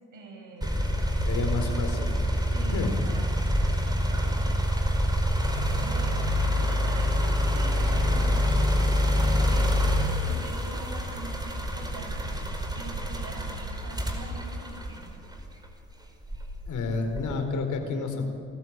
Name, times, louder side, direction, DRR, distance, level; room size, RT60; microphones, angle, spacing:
voice 1, 0.1-0.8 1.3-1.7 2.5-3.5 3.8-4.9 5.3-9.8 10.2-12.3 12.8-15.2, right 3 dB, 60° right, 3 dB, 7.1 m, -44 dB
sound 1, 0.6-15.6 16.2-17.4, equal, 10° right, 4.9 m, -26 dB
voice 2, 1.3-2.2 2.6-3.0 16.7-18.2, left 4 dB, 55° left, 5 dB, 4.5 m, -30 dB
29.0 x 14.0 x 9.0 m, 2.6 s
supercardioid pair, 70°, 36 cm